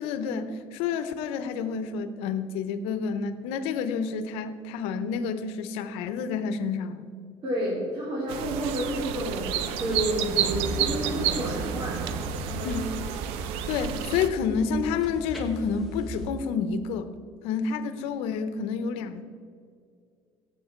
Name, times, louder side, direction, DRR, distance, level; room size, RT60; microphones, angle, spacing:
voice 1, 0.0-7.1 12.6-12.8 13.7-17.1 17.4-19.2, left 6 dB, 85° left, 11 dB, 0.9 m, -29 dB
voice 2, 7.4-9.5 9.8-12.0 12.3-12.7, right 1 dB, 50° right, -6 dB, 3.6 m, -30 dB
sound 1, 8.3-14.3, right 9 dB, 85° right, 0.8 m, -31 dB
sound 2, 8.9-13.7, right 3 dB, 30° right, 1.0 m, -39 dB
sound 3, 9.7-16.3, equal, ahead, 2.2 m, -39 dB
16.5 x 8.0 x 4.5 m, 2.3 s
cardioid pair, 105°, 10 cm